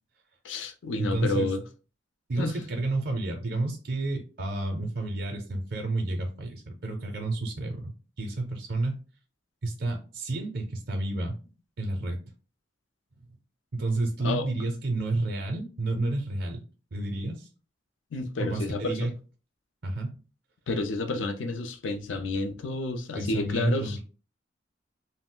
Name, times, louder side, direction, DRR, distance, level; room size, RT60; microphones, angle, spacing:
voice 1, 0.4-1.6 2.4-2.5 14.2-14.5 18.1-19.1 20.7-24.0, left 2 dB, 80° left, 0.4 m, -30 dB
voice 2, 1.0-1.5 2.3-9.0 9.6-11.3 11.8-12.2 13.7-16.6 16.9-17.5 18.4-19.1 19.8-20.1 23.1-24.0, right 2 dB, 55° right, 0.5 m, -30 dB
2.3 x 2.0 x 3.7 m
head